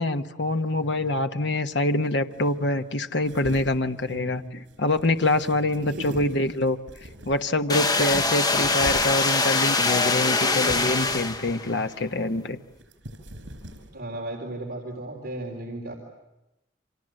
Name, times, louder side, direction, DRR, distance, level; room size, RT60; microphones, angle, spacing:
voice 1, 0.0-6.8 7.2-12.6, left 2 dB, 65° left, 7 dB, 1.2 m, -25 dB
sound 1, 1.7-1.8 2.1-7.6 8.0-9.3 9.7-10.4 10.7-11.6 11.8-14.0, right 1 dB, 75° right, 5.0 m, -43 dB
voice 2, 4.1-4.5 5.8-6.3 13.9-15.9, right 1 dB, 50° right, 0 dB, 3.8 m, -35 dB
sound 2, 7.7-11.7, left 3 dB, 20° left, 1.1 m, -23 dB
29.5 x 26.0 x 7.8 m, 0.94 s
head